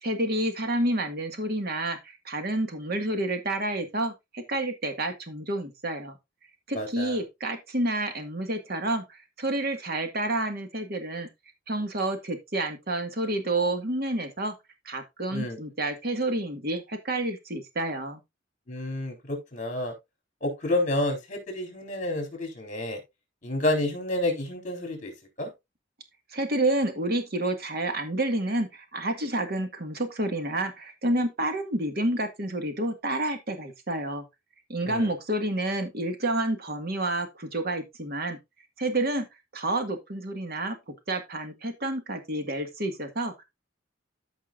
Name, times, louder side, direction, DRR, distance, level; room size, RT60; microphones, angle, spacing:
voice 1, 0.0-6.2 6.7-11.3 11.7-14.5 14.9-18.2 26.3-34.2 34.7-38.4 38.8-39.3 39.5-43.3, right 1 dB, 55° right, 1.9 m, -29 dB
voice 2, 6.7-7.2 15.3-15.6 18.7-19.9 20.4-23.0 23.4-25.1 25.4-25.5 34.8-35.1, left 1 dB, 40° left, 4.0 m, -29 dB
14.0 x 5.5 x 2.6 m
head